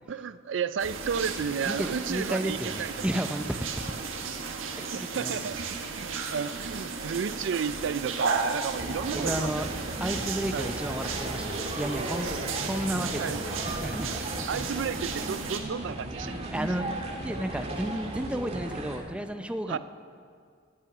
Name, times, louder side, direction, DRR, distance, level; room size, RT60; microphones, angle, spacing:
voice 1, 0.1-2.9 4.9-5.6 5.9-10.0 10.5-10.7 12.4-12.5 13.2-13.4 14.5-16.3 19.7-19.8, right 6 dB, 65° right, 14 dB, 0.4 m, -32 dB
sound 1, 0.8-15.6, right 4 dB, 85° right, 1.4 m, -34 dB
voice 2, 1.6-3.4 4.9-5.4 6.0-6.2 9.1-9.7 10.0-12.4 12.6-14.4 16.5-16.9 17.2-19.8, right 1 dB, 5° right, 7 dB, 0.6 m, -32 dB
sound 2, 8.8-19.0, right 1 dB, 30° right, 1.8 m, -36 dB
Bowed string instrument, 10.5-14.8, equal, 60° left, 4.1 m, -48 dB
18.5 x 8.9 x 5.9 m, 2.2 s
head